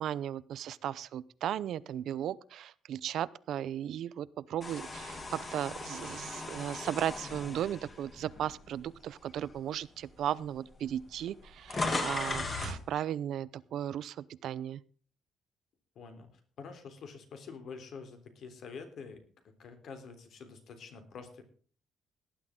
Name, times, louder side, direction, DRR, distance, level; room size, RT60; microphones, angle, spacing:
voice 1, 0.0-14.8, right 10 dB, 60° right, 18 dB, 0.6 m, -36 dB
sound 1, 4.6-8.9 9.4-9.6 10.5-10.6 10.8-12.8, left 2 dB, 25° left, 2.5 m, -37 dB
voice 2, 16.0-16.3 16.6-21.4, left 5 dB, 50° left, 7 dB, 3.5 m, -47 dB
18.0 x 11.5 x 3.7 m, 0.42 s
cardioid pair, 170°, 0 cm